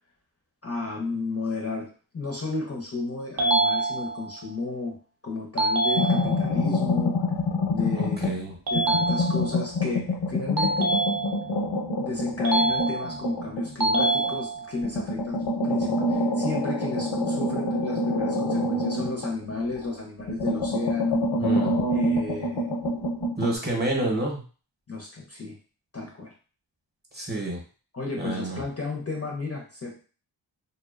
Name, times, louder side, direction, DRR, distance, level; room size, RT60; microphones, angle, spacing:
voice 1, 0.6-1.9 2.1-7.2 7.7-8.3 8.7-11.0 12.0-21.3 21.9-22.7 24.9-25.6 25.9-26.3 27.9-30.0, left 3 dB, 35° left, -1 dB, 0.5 m, -32 dB
sound 1, 3.4-4.4 5.6-6.6 8.7-9.7 10.6-11.6 12.4-13.4 13.8-14.8, right 2 dB, 50° right, 0.6 m, -26 dB
sound 2, 6.0-8.4 8.7-14.4 14.8-19.9 20.2-23.6, left 1 dB, 75° left, 0.8 m, -27 dB
voice 2, 7.9-8.6 21.4-21.8 23.4-24.4 27.1-27.6 28.2-28.6, right 2 dB, 20° right, -1 dB, 0.8 m, -29 dB
2.6 x 2.1 x 2.4 m, 0.37 s
wide cardioid pair, 65°, 46 cm